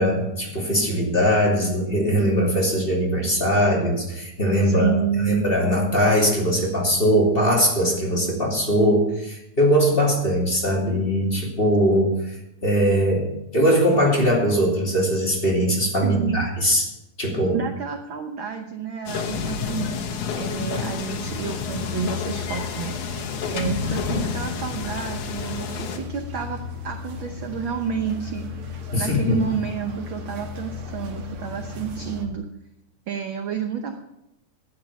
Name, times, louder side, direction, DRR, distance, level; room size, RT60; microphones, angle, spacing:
voice 1, 0.0-4.9 5.2-12.1 12.6-16.9 17.2-17.6 28.9-29.4, equal, 20° left, -2 dB, 2.7 m, -21 dB
voice 2, 4.6-5.5 16.0-16.5 17.5-19.9 20.4-23.0 23.5-28.4 28.9-32.5 33.1-34.0, right 7 dB, 70° right, 5 dB, 1.1 m, -30 dB
sound 1, 19.1-26.0, left 6 dB, 75° left, 2.8 m, -29 dB
sound 2, 21.2-32.2, left 4 dB, 50° right, 2.1 m, -36 dB
12.0 x 9.7 x 7.1 m, 0.84 s
omnidirectional pair, 3.5 m